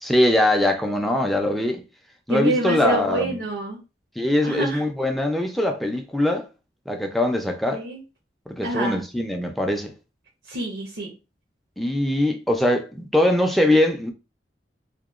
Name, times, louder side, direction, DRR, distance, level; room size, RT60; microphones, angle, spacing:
voice 1, 0.0-1.8 2.3-3.4 4.2-6.5 6.9-7.8 8.5-9.9 11.8-14.1, left 1 dB, ahead, 0.3 m, -22 dB
voice 2, 2.3-3.8 4.4-4.8 7.7-8.0 8.6-9.0 10.5-11.1, right 2 dB, 85° right, 0.7 m, -26 dB
2.8 x 2.1 x 2.3 m
head